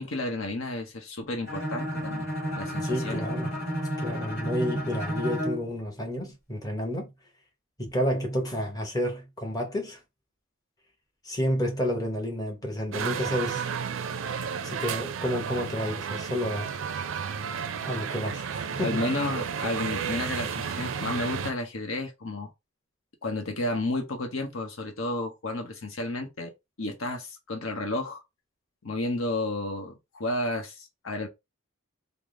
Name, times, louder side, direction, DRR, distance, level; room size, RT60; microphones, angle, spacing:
voice 1, 0.0-2.3 2.6-3.2 18.8-22.5 23.2-26.5 26.8-28.2 28.8-31.3, left 2 dB, 75° left, 0.8 m, -32 dB
Bowed string instrument, 1.4-5.7, equal, 50° left, 2.0 m, -31 dB
voice 2, 2.8-3.5 4.0-7.1 7.8-10.0 11.2-13.6 14.6-16.7 17.8-19.0, equal, 20° left, 0.9 m, -30 dB
sound 1, 12.9-21.5, right 7 dB, 70° right, 0.4 m, -32 dB
3.5 x 2.0 x 3.6 m
head